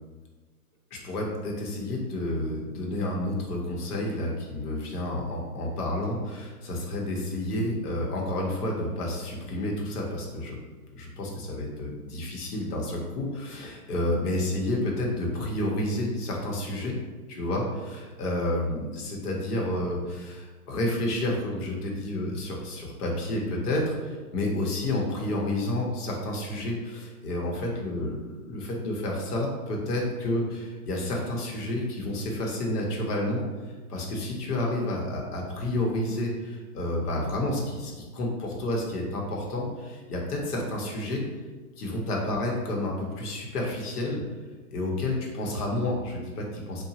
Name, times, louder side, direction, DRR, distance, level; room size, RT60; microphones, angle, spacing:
voice 1, 0.9-10.6 10.9-16.9 17.3-41.2 41.8-44.2 44.7-46.8, left 1 dB, 80° left, -1 dB, 0.9 m, -30 dB
2.8 x 2.2 x 2.8 m, 1.3 s
hypercardioid pair, 145°, 46 cm